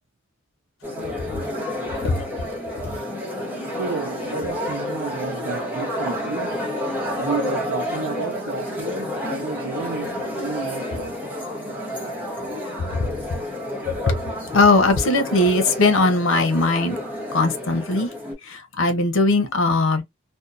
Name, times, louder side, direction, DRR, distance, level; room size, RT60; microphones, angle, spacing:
sound 1, 0.8-18.3, left 1 dB, 10° right, 0.9 m, -30 dB
voice 1, 3.8-6.7 7.2-11.2, right 6 dB, 85° right, 0.4 m, -31 dB
voice 2, 14.5-17.0 17.3-18.1 18.5-20.0, left 2 dB, 90° left, 0.7 m, -19 dB
2.7 x 2.1 x 2.4 m
head